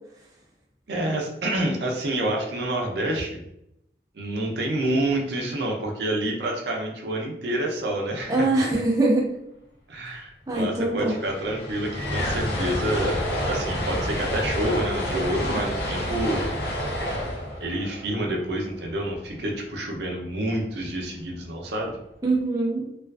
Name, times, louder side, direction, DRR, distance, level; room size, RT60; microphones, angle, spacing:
voice 1, 0.9-3.4 4.1-8.5 9.9-13.2 13.5-16.4 17.6-21.9, right 1 dB, 70° right, 1 dB, 0.5 m, -28 dB
voice 2, 8.3-9.3 10.5-11.2 22.2-22.9, right 2 dB, 20° right, -2 dB, 0.4 m, -23 dB
sound 1, 10.9-19.1, equal, 70° left, 0.5 m, -29 dB
2.3 x 2.2 x 2.3 m, 0.80 s
head